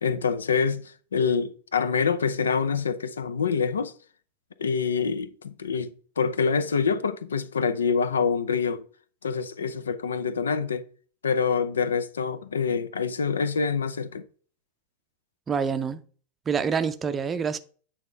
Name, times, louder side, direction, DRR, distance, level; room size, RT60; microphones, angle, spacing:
voice 1, 0.0-3.9 4.6-8.8 9.2-10.8 11.2-14.2, left 5 dB, 70° left, 0.6 m, -26 dB
voice 2, 15.5-16.0 16.5-17.6, right 6 dB, 20° right, 0.6 m, -26 dB
8.9 x 3.5 x 5.3 m
figure-of-eight pair, 90°, 0 cm